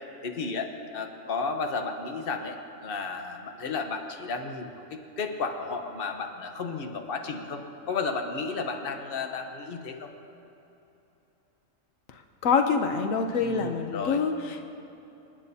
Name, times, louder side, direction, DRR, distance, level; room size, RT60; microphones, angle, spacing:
voice 1, 0.2-2.6 2.8-7.6 7.9-10.1 13.4-14.2, left 4 dB, 50° left, 4 dB, 1.2 m, -33 dB
voice 2, 12.4-14.6, left 5 dB, 85° left, 6 dB, 1.2 m, -25 dB
28.5 x 9.9 x 2.8 m, 2.9 s
omnidirectional pair, 1.3 m